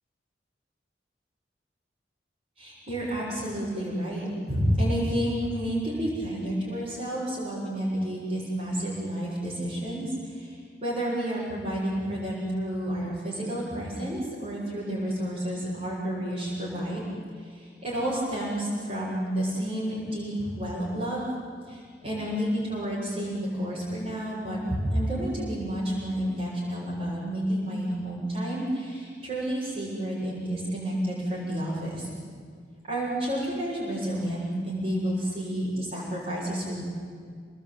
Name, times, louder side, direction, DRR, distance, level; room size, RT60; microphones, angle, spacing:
voice 1, 2.6-17.0 17.4-21.3 21.7-32.1 32.9-36.8, equal, 40° right, -8 dB, 7.3 m, -30 dB
30.0 x 19.5 x 9.2 m, 2.1 s
head